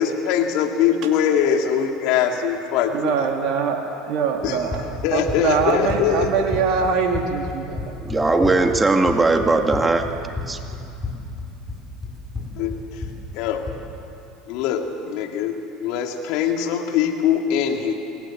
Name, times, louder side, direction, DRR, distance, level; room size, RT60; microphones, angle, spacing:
voice 1, 0.0-3.2 4.4-4.6 5.0-6.3 12.6-12.8 13.3-13.7 14.5-17.9, left 8 dB, 65° left, 4 dB, 2.6 m, -22 dB
voice 2, 2.9-8.3, right 5 dB, 55° right, 2 dB, 2.6 m, -23 dB
Run, 4.4-13.9, left 3 dB, 20° left, 6.8 m, -32 dB
voice 3, 8.0-10.0 10.5-10.6, right 3 dB, 15° right, 5 dB, 2.0 m, -18 dB
27.0 x 19.5 x 7.6 m, 2.7 s
hypercardioid pair, 75°, 0 cm